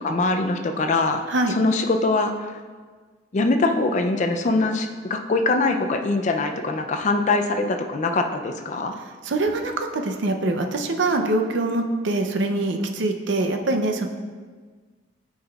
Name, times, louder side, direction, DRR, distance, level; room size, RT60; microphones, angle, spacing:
voice 1, 0.0-1.2 1.5-2.3 3.3-8.9, left 3 dB, 40° left, 6 dB, 0.4 m, -22 dB
voice 2, 9.2-14.1, right 2 dB, 70° right, 4 dB, 0.6 m, -24 dB
8.6 x 5.5 x 2.3 m, 1.5 s
head